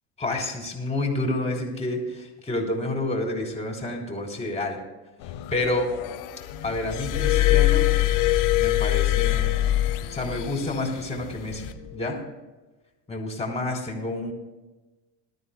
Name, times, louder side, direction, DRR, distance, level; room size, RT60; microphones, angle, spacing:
voice 1, 0.2-4.8 5.5-5.9 6.6-7.9 8.6-9.6 10.1-12.2 13.1-14.3, left 2 dB, 15° left, 1 dB, 3.6 m, -29 dB
sound 1, 5.2-12.1, left 8 dB, 60° left, 1.3 m, -40 dB
Glass, 6.9-10.5 11.5-11.7, left 14 dB, 45° left, 1.0 m, -22 dB
21.0 x 13.0 x 2.2 m, 1.2 s
supercardioid pair, 115°, 45 cm